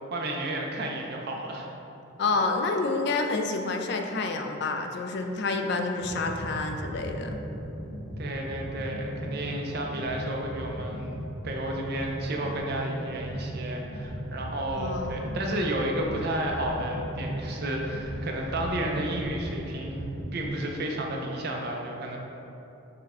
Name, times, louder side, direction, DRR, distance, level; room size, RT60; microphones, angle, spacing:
voice 1, 0.1-1.7 8.2-22.2, right 1 dB, 55° right, 0 dB, 0.5 m, -32 dB
voice 2, 2.2-7.4 14.8-15.4, left 3 dB, 55° left, 4 dB, 0.3 m, -29 dB
sound 1, 6.0-20.5, equal, 5° right, 0.9 m, -37 dB
5.7 x 2.2 x 3.5 m, 2.9 s
head